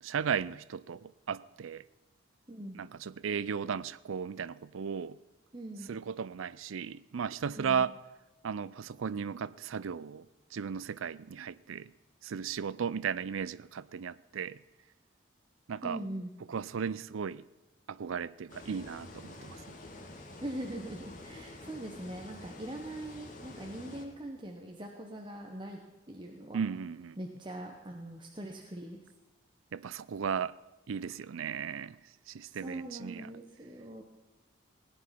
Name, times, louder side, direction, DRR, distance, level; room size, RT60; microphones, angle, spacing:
voice 1, 0.0-1.8 2.7-5.2 5.9-7.9 8.4-10.3 10.5-11.9 12.2-14.6 15.7-16.0 16.5-17.4 17.9-19.6 26.5-27.2 29.7-30.5 30.9-32.0 32.3-33.3, right 7 dB, 75° right, 0.4 m, -35 dB
voice 2, 2.5-2.8 5.5-5.9 7.6-7.8 15.8-16.3 20.4-25.8 26.1-26.6 27.2-29.0 32.5-34.0, right 1 dB, 25° right, 1.0 m, -42 dB
sound 1, 18.5-24.1, left 2 dB, 40° left, 1.6 m, -48 dB
17.0 x 9.7 x 5.9 m
head